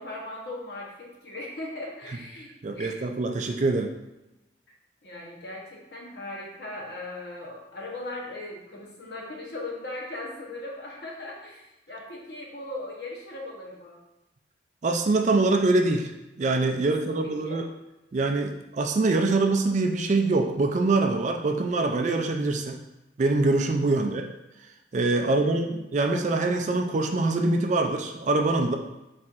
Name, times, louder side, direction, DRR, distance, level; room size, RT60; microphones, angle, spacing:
voice 1, 0.0-3.0 5.0-14.0 16.8-17.6 25.2-25.6, left 2 dB, 60° left, -2 dB, 1.0 m, -39 dB
voice 2, 2.6-3.9 14.8-16.1 16.4-17.7 18.1-22.8 23.2-24.2 24.9-28.8, right 3 dB, 40° right, 4 dB, 0.3 m, -24 dB
4.3 x 4.2 x 2.5 m, 0.97 s
head